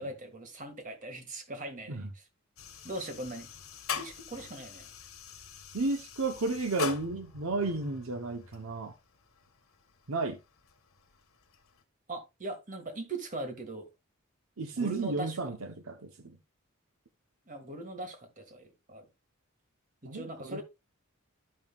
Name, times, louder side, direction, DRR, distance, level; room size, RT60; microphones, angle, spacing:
voice 1, 0.0-2.3 2.8-3.5 3.9-4.9 12.1-13.9 14.7-15.4 17.5-19.1 20.0-20.6, right 2 dB, 40° right, 1.8 m, -40 dB
sound 1, 2.6-11.8, left 5 dB, 85° left, 1.3 m, -43 dB
voice 2, 5.7-8.9 10.1-10.4 14.6-16.4 20.0-20.6, right 3 dB, 90° right, 0.9 m, -33 dB
12.5 x 5.5 x 2.4 m
head